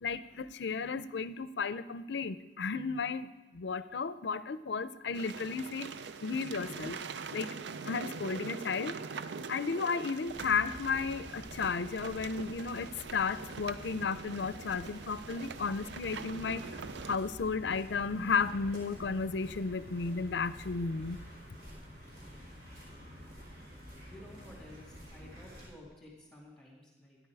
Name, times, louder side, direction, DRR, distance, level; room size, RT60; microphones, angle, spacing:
voice 1, 0.0-3.3 3.5-5.9 6.2-7.0 7.3-7.5 7.9-8.9 9.5-16.6 17.0-21.2, left 5 dB, 80° left, 14 dB, 0.5 m, -33 dB
sound 1, 5.1-17.2, right 5 dB, 80° right, 0.5 m, -43 dB
sound 2, 10.3-25.7, equal, 55° right, 4.8 m, -49 dB
voice 2, 24.1-27.2, left 1 dB, 5° left, -4 dB, 2.4 m, -53 dB
13.0 x 10.5 x 4.7 m, 1.2 s
head